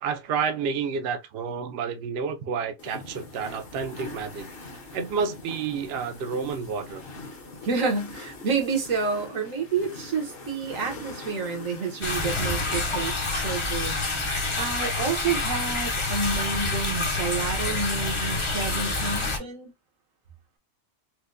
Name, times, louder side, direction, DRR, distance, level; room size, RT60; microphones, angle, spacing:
voice 1, 0.0-4.5 4.9-7.0, right 6 dB, 60° right, 0.7 m, -30 dB
sound 1, 2.8-12.8, left 3 dB, 50° left, 0.9 m, -42 dB
voice 2, 7.6-14.0 14.6-19.7, right 5 dB, 80° right, 1.4 m, -29 dB
sound 2, 12.0-19.4, left 3 dB, 30° left, 0.6 m, -27 dB
4.2 x 2.1 x 2.5 m
omnidirectional pair, 1.4 m